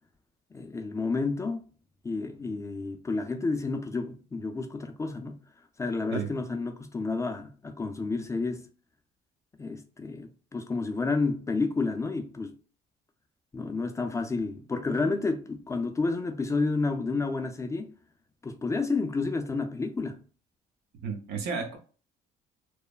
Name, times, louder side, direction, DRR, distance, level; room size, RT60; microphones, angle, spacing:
voice 1, 0.5-1.6 2.0-5.4 5.8-8.6 9.6-12.5 13.5-17.9 18.4-20.2, left 3 dB, 15° left, 0.4 m, -30 dB
voice 2, 21.0-21.8, right 5 dB, 80° right, 0.8 m, -33 dB
3.1 x 2.1 x 2.3 m
cardioid pair, 110°, 17 cm